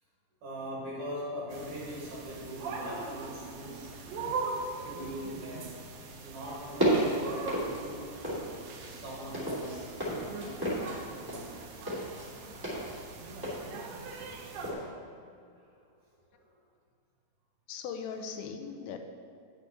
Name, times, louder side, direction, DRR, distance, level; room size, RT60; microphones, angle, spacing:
voice 1, 0.4-4.0 4.7-5.7 6.2-8.1 8.9-9.9 15.6-15.7 16.4-16.5, equal, 60° right, -5 dB, 2.4 m, -41 dB
sound 1, 1.5-14.7, right 4 dB, 75° right, 2.7 m, -41 dB
sound 2, 6.7-8.5 8.8-14.4 14.6-14.8, right 1 dB, 20° right, 0.5 m, -33 dB
voice 2, 17.7-19.0, left 6 dB, 90° left, 5 dB, 3.0 m, -39 dB
9.8 x 8.3 x 3.4 m, 2.4 s
omnidirectional pair, 5.1 m